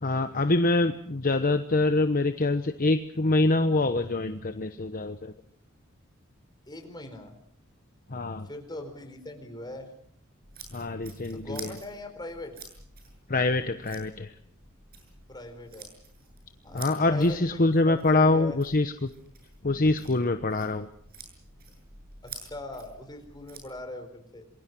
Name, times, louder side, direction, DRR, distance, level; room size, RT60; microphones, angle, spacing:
voice 1, 0.0-5.3 8.1-8.5 10.7-11.7 13.3-14.3 16.7-19.1 19.6-20.9, left 2 dB, 45° left, 9 dB, 1.0 m, -25 dB
voice 2, 6.7-7.3 8.4-9.9 11.3-12.6 15.3-15.9 16.6-18.6 22.2-24.5, left 1 dB, 20° left, 6 dB, 4.5 m, -40 dB
sound 1, 10.4-23.7, right 4 dB, 50° right, 7.6 m, -49 dB
27.5 x 22.0 x 6.2 m, 0.65 s
head